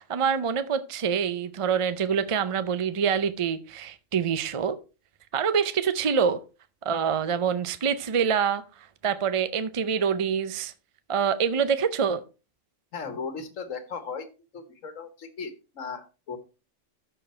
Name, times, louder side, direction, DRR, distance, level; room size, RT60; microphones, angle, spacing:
voice 1, 0.0-4.8 5.3-6.4 6.8-8.6 9.0-10.7 11.1-12.2, right 7 dB, 50° right, 12 dB, 0.4 m, -25 dB
voice 2, 12.9-14.3 14.5-16.4, left 5 dB, 75° left, 10 dB, 1.6 m, -37 dB
13.0 x 4.5 x 4.3 m, 0.32 s
omnidirectional pair, 1.4 m